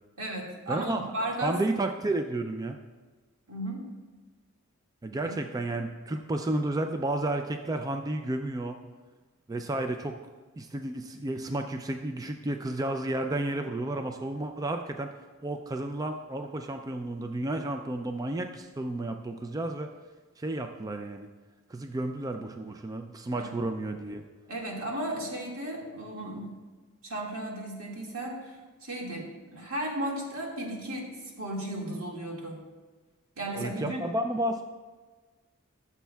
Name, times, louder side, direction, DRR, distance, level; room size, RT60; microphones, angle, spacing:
voice 1, 0.2-1.6 3.5-3.8 5.2-5.3 23.3-23.5 24.5-26.5 27.0-31.1 31.4-32.6 33.4-34.0, right 1 dB, 80° right, -2 dB, 2.0 m, -35 dB
voice 2, 0.7-2.8 5.0-8.8 9.5-10.2 10.6-15.1 15.4-19.9 20.4-21.3 21.7-24.2 33.6-34.6, right 2 dB, 15° right, 5 dB, 0.3 m, -32 dB
14.5 x 7.1 x 2.3 m, 1.3 s
head